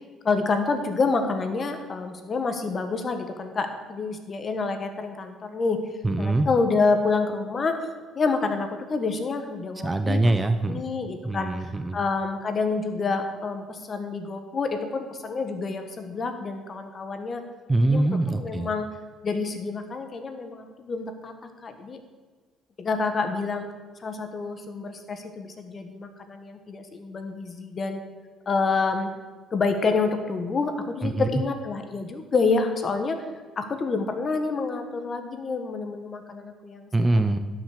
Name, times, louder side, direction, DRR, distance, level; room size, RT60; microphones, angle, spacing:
voice 1, 0.2-5.8 6.2-7.8 8.1-10.3 10.7-11.5 11.9-17.4 17.9-18.9 19.2-21.3 21.6-22.0 22.8-23.7 24.0-28.0 28.4-29.1 29.5-33.2 33.6-36.9, left 4 dB, 40° left, 7 dB, 1.5 m, -28 dB
voice 2, 6.0-6.5 9.8-10.8 11.2-12.0 17.7-18.7 31.0-31.3 36.9-37.4, right 2 dB, 20° right, 9 dB, 0.7 m, -23 dB
11.5 x 6.3 x 6.8 m, 1.4 s
supercardioid pair, 85°, 0 cm